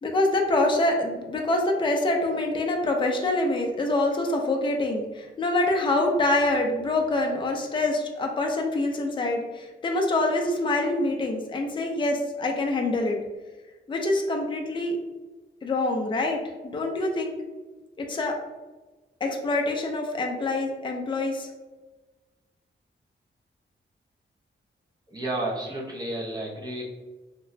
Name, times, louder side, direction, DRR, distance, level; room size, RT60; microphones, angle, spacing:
voice 1, 0.0-13.2 13.9-15.0 15.6-17.4 18.0-18.4 19.2-21.5, left 2 dB, 25° left, 1 dB, 0.4 m, -25 dB
voice 2, 25.1-26.8, right 1 dB, 20° right, -3 dB, 0.7 m, -31 dB
3.0 x 2.9 x 2.6 m, 1.2 s
wide cardioid pair, 160°, 20 cm